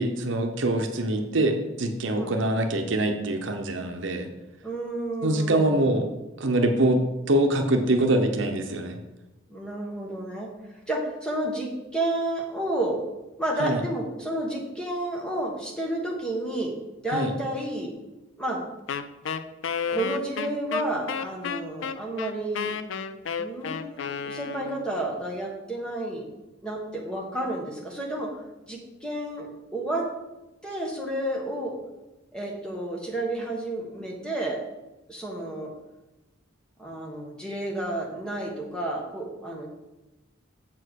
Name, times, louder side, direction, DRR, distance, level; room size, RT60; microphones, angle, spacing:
voice 1, 0.0-4.3 5.2-6.1 6.4-9.0 13.6-13.8 17.1-17.3, right 1 dB, 65° right, 4 dB, 0.9 m, -24 dB
voice 2, 4.6-6.0 9.5-10.5 10.9-13.0 13.4-16.7 17.0-17.9 18.4-18.6 19.9-22.7 23.4-26.3 26.6-28.4 28.7-30.1 30.6-31.8 32.3-34.6 35.1-35.7 36.8-39.7, right 1 dB, 5° left, -1 dB, 1.4 m, -31 dB
Wind instrument woodwind instrument, 18.9-25.0, left 6 dB, 75° left, 0.5 m, -32 dB
7.5 x 4.6 x 6.3 m, 1.0 s
head